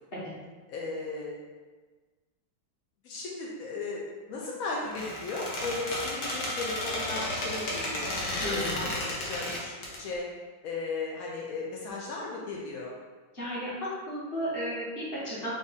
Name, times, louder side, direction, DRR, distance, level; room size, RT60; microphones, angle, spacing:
voice 1, 0.7-1.4 3.0-4.0 4.3-8.1 8.5-9.7 10.0-10.3 10.6-12.9, left 3 dB, 85° left, -3 dB, 0.7 m, -36 dB
Squeak, 4.8-10.0, left 1 dB, 55° left, 0.9 m, -33 dB
voice 2, 8.4-8.9 13.3-15.5, equal, 30° left, -9 dB, 1.4 m, -34 dB
3.6 x 2.6 x 4.0 m, 1.3 s
omnidirectional pair, 2.2 m